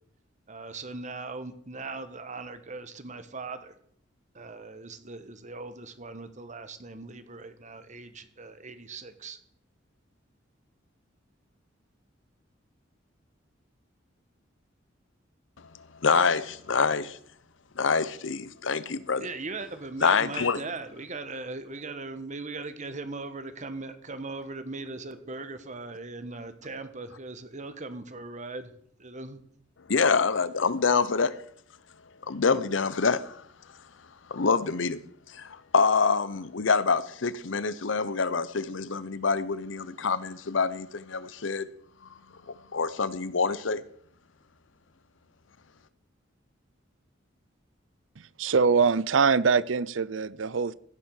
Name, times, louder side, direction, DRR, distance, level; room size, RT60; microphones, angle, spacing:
voice 1, 0.5-3.7 4.3-9.4 19.2-28.7 29.0-29.4, right 3 dB, 40° right, 1.3 m, -39 dB
voice 2, 16.0-17.2 17.8-19.3 20.0-20.6 29.9-31.3 32.3-33.4 34.3-35.0 35.3-41.7 42.7-43.8, left 5 dB, 80° left, 0.8 m, -26 dB
voice 3, 48.2-50.7, right 5 dB, 90° right, 0.6 m, -23 dB
16.0 x 7.4 x 6.5 m
head